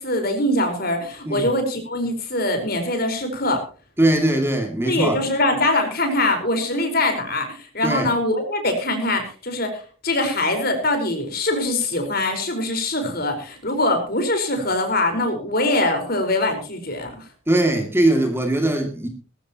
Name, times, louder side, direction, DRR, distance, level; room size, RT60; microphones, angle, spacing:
voice 1, 0.0-3.6 4.9-17.2, left 1 dB, 50° left, 5 dB, 4.7 m, -23 dB
voice 2, 4.0-5.2 7.8-8.1 17.5-19.1, right 1 dB, 10° right, 4 dB, 2.4 m, -20 dB
19.5 x 15.0 x 3.0 m, 0.38 s
head